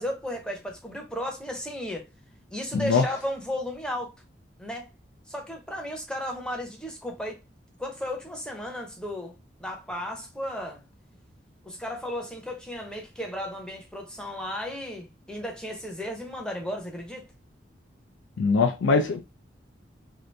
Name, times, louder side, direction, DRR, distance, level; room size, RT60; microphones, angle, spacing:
voice 1, 0.0-2.1 2.5-4.1 4.6-4.9 5.3-7.4 7.8-10.8 11.6-17.3, left 1 dB, 5° left, 0.6 m, -34 dB
voice 2, 2.7-3.1 18.4-19.2, left 4 dB, 85° left, 0.4 m, -22 dB
2.7 x 2.5 x 3.1 m
head